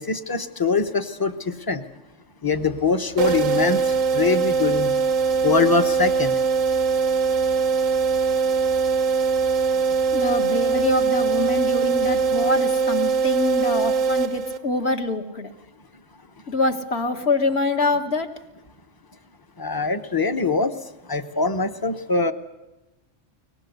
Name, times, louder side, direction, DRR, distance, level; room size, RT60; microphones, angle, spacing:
voice 1, 0.0-1.8 2.4-4.9 5.4-6.3 19.6-20.7 21.1-22.3, left 4 dB, 20° left, 9 dB, 0.8 m, -23 dB
sound 1, 2.5-12.6, right 2 dB, 75° left, 5.0 m, -45 dB
sound 2, 3.2-14.9, right 5 dB, 90° right, 1.3 m, -22 dB
voice 2, 10.1-15.5 16.5-18.3, left 2 dB, 55° left, 5 dB, 1.8 m, -25 dB
22.5 x 19.5 x 8.0 m, 1.0 s
omnidirectional pair, 1.3 m